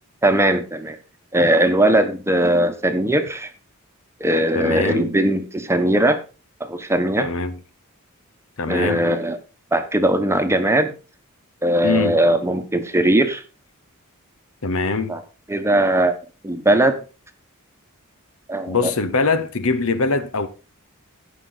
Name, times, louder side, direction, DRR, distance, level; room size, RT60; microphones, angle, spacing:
voice 1, 0.2-1.0 1.3-3.5 4.2-6.2 6.6-7.3 8.7-9.4 9.7-10.9 11.6-13.4 15.1-15.2 15.5-16.2 16.4-17.0 18.5-18.8, right 1 dB, 10° right, 1.2 m, -19 dB
voice 2, 4.5-5.1 7.2-7.6 8.6-9.0 11.8-12.2 14.6-15.2 18.7-20.5, left 4 dB, 70° left, 1.0 m, -22 dB
16.0 x 6.1 x 3.9 m
head